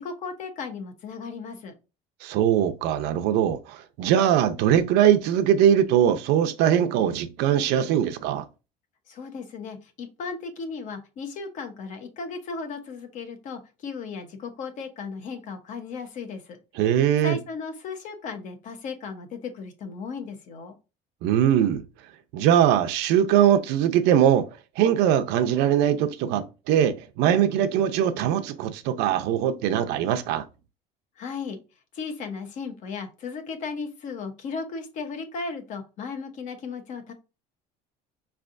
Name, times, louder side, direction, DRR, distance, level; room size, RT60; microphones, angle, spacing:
voice 1, 0.0-1.8 9.1-16.6 17.2-20.7 31.2-31.6 31.9-37.1, left 4 dB, 45° left, 1.0 m, -36 dB
voice 2, 2.2-8.4 16.8-17.4 21.2-21.8 22.3-24.5 24.8-30.4, right 10 dB, 80° right, 0.7 m, -21 dB
5.5 x 3.3 x 2.6 m
cardioid pair, 160°, 17 cm